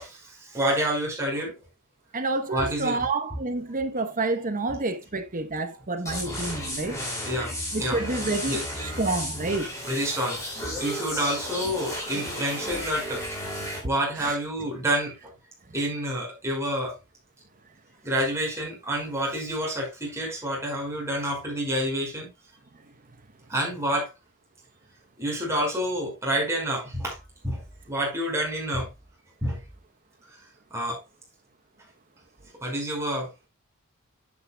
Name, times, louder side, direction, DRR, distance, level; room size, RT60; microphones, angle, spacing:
voice 1, 0.0-1.5 2.5-3.0 7.3-8.0 8.5-8.6 9.9-10.4 10.7-15.1 15.7-17.0 18.0-22.3 23.5-24.1 25.2-28.9 29.4-29.6 30.7-31.0 32.5-33.3, right 1 dB, 15° right, 5.3 m, -28 dB
voice 2, 2.1-7.0 7.7-9.7 14.2-14.4, right 3 dB, 40° right, 1.1 m, -29 dB
sound 1, 6.0-13.8, equal, 15° left, 5.7 m, -33 dB
11.0 x 8.9 x 2.3 m
head